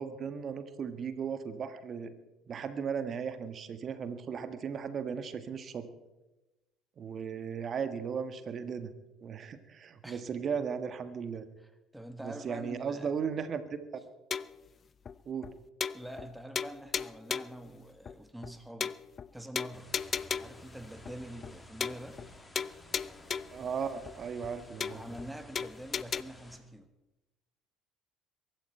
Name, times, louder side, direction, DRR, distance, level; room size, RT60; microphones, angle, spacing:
voice 1, 0.0-2.1 2.5-5.9 7.0-8.9 9.2-11.5 12.2-14.0 15.2-15.5 23.5-25.0, right 6 dB, 40° right, 10 dB, 1.6 m, -36 dB
voice 2, 11.6-13.1 15.9-19.0 19.3-19.9 20.4-22.2 24.9-26.9, right 1 dB, 5° right, 9 dB, 1.4 m, -45 dB
sound 1, 14.3-14.6 15.1-15.2 15.4-15.5 15.8-16.3 16.6-17.6 18.1-18.2 18.4-18.5 18.8-19.3 19.6-20.6 21.1-21.2 21.4-21.5 21.8-22.3 22.6-23.6 24.1-24.2 24.4-24.5 24.8-25.3 25.6-26.2, left 7 dB, 40° left, 0.4 m, -35 dB
sound 2, 19.7-26.6, left 1 dB, 15° left, 2.7 m, -54 dB
22.5 x 13.0 x 4.5 m, 1.0 s
figure-of-eight pair, 60°, 0 cm